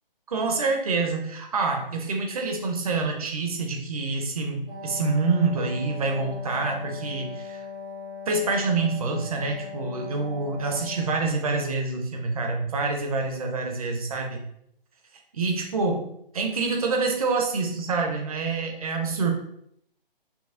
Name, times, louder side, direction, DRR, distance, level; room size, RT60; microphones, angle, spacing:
voice 1, 0.3-7.6 8.3-14.4 15.3-16.1 16.3-19.3, right 3 dB, 40° right, 3 dB, 0.8 m, -26 dB
Wind instrument woodwind instrument, 4.7-11.4, left 4 dB, 10° left, 0.3 m, -39 dB
6.0 x 2.0 x 3.6 m, 0.72 s
figure-of-eight pair, 150°, 29 cm